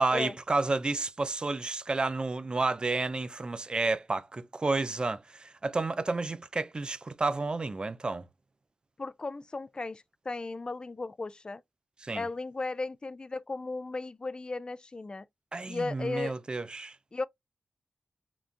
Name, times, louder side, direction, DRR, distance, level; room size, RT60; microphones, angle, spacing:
voice 1, 0.0-8.2 12.0-12.2 15.5-17.0, right 3 dB, 40° right, 0.4 m, -31 dB
voice 2, 9.0-11.6 12.1-15.3 15.7-16.3 17.1-17.2, left 3 dB, 35° left, 0.3 m, -35 dB
3.8 x 2.3 x 2.5 m
cardioid pair, 60°, 2 cm